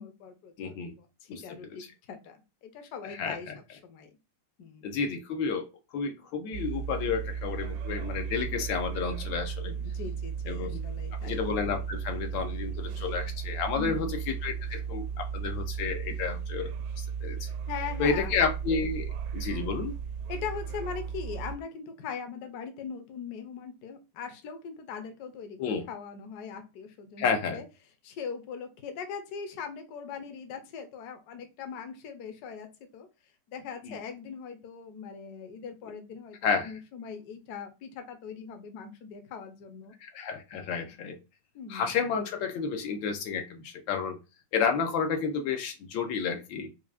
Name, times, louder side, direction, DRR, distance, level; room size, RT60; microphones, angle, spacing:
voice 1, 0.0-4.2 4.6-4.8 9.6-11.4 13.8-14.1 17.7-18.4 20.3-27.7 28.0-32.7 32.9-33.1 33.5-39.9 41.5-42.0, left 6 dB, 65° left, 7 dB, 1.1 m, -41 dB
voice 2, 0.6-0.9 1.3-1.4 3.0-3.6 4.8-5.7 5.9-9.7 10.5-10.8 11.2-16.7 17.0-17.5 18.0-19.9 25.6-25.9 27.2-27.6 33.8-33.9 36.4-36.7 40.0-41.2 41.7-44.2 44.5-46.7, left 5 dB, 85° left, 5 dB, 1.4 m, -31 dB
sound 1, 6.5-21.6, right 7 dB, 75° right, 1.0 m, -35 dB
4.6 x 2.4 x 2.3 m, 0.28 s
omnidirectional pair, 2.0 m